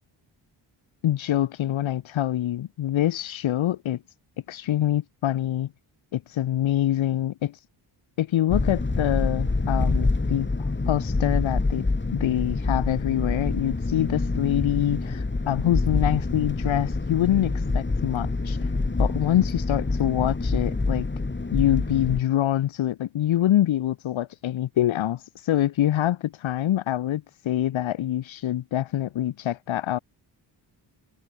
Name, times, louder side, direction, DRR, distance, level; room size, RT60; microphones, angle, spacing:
voice 1, 1.0-4.0 4.5-5.7 6.1-7.6 8.2-11.8 12.1-18.7 19.0-21.1 21.5-30.0, left 12 dB, 75° left, 1.2 m, -25 dB
sound 1, 8.5-22.2, left 3 dB, 25° left, 5.7 m, -26 dB
cardioid pair, 85°, 47 cm